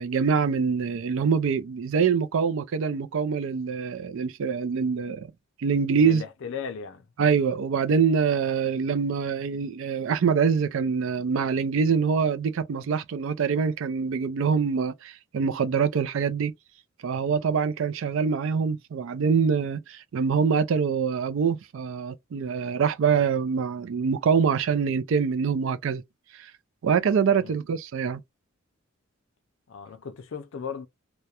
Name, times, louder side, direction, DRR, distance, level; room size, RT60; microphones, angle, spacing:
voice 1, 0.0-5.3 5.6-6.2 7.2-16.5 17.0-26.0 26.4-26.5 26.8-28.2, right 6 dB, 65° right, 0.4 m, -24 dB
voice 2, 6.0-7.1 27.4-27.6 29.7-30.9, left 6 dB, 65° left, 0.4 m, -36 dB
2.3 x 2.1 x 2.8 m
head